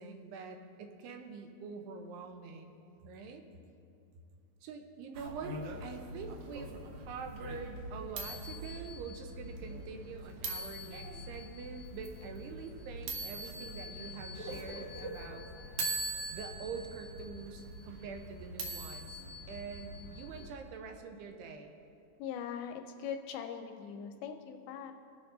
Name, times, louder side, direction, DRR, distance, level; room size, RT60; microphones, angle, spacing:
voice 1, 0.0-2.7 3.0-3.4 4.6-15.8 16.3-19.2 19.5-21.7, right 5 dB, 85° right, 4 dB, 2.8 m, -45 dB
sound 1, 5.1-20.5, right 2 dB, 70° right, 1.8 m, -42 dB
voice 2, 22.2-24.9, left 7 dB, 80° left, 6 dB, 2.3 m, -41 dB
21.5 x 8.5 x 2.6 m, 2.5 s
omnidirectional pair, 4.6 m